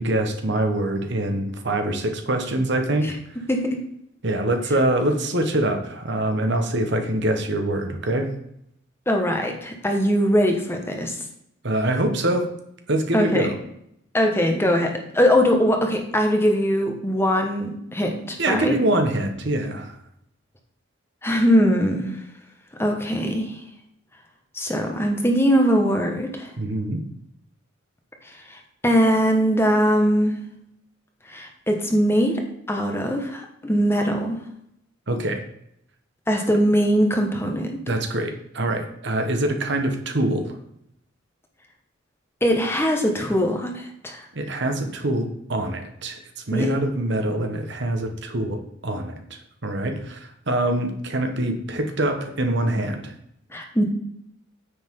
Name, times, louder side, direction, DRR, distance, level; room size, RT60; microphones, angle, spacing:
voice 1, 0.0-3.4 4.2-8.3 11.6-12.5 12.9-13.5 18.4-20.0 26.6-27.0 35.1-35.4 37.8-40.6 44.3-46.2 46.5-53.1, right 1 dB, 60° right, 6 dB, 1.3 m, -24 dB
voice 2, 3.5-3.8 9.1-11.1 13.1-13.5 14.1-18.7 21.2-22.2 22.8-23.6 24.5-26.5 28.2-28.6 28.8-30.4 31.3-32.3 32.7-34.4 36.3-37.8 42.4-44.2 46.5-46.7 53.5-53.8, equal, 10° left, 3 dB, 1.3 m, -21 dB
9.8 x 7.6 x 3.8 m, 0.74 s
head